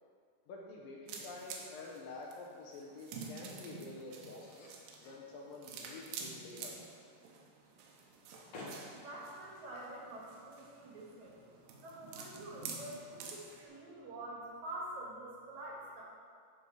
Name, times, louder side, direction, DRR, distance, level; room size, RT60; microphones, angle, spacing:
voice 1, 0.5-4.7 5.0-6.8, left 3 dB, 80° left, -2 dB, 2.0 m, -48 dB
sound 1, 1.1-13.7, right 5 dB, 80° right, 2.8 m, -49 dB
sound 2, 3.2-12.0, left 2 dB, 55° left, 2.0 m, -58 dB
voice 2, 8.7-11.4 11.8-16.0, right 1 dB, 60° right, -5 dB, 2.2 m, -47 dB
12.0 x 4.1 x 4.7 m, 2.3 s
omnidirectional pair, 4.9 m